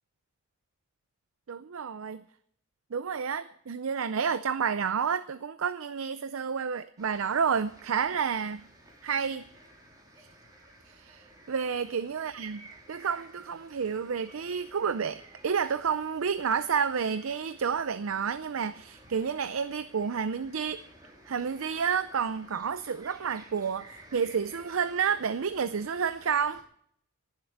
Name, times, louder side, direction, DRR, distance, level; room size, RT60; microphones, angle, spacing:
voice 1, 1.5-2.2 2.9-8.6 9.0-9.4 10.2-10.3 10.9-12.6 12.9-20.8 21.3-26.6, right 6 dB, 85° right, 13 dB, 0.5 m, -30 dB
sound 1, 7.0-26.6, right 1 dB, 20° right, 3.3 m, -54 dB
18.0 x 7.6 x 7.1 m, 0.68 s
head